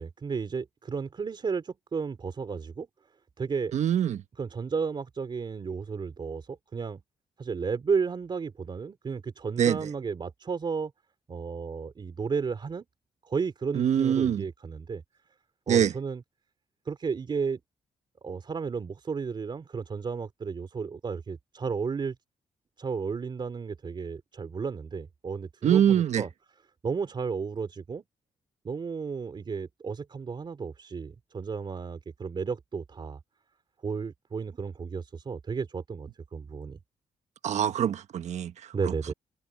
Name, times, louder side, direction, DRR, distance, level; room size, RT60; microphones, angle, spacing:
voice 1, 0.0-2.9 3.4-3.7 4.4-7.0 7.4-10.9 11.3-12.8 13.2-15.0 15.7-16.2 16.8-17.6 18.2-22.1 22.8-26.3 26.8-28.0 28.6-33.2 33.8-36.8 38.7-39.1, right 5 dB, 40° right, 3.4 m, -33 dB
voice 2, 3.7-4.2 9.6-9.8 13.7-14.4 15.7-15.9 25.6-26.2 37.4-38.5, right 9 dB, 70° right, 1.3 m, -24 dB
cardioid pair, 115°, 12 cm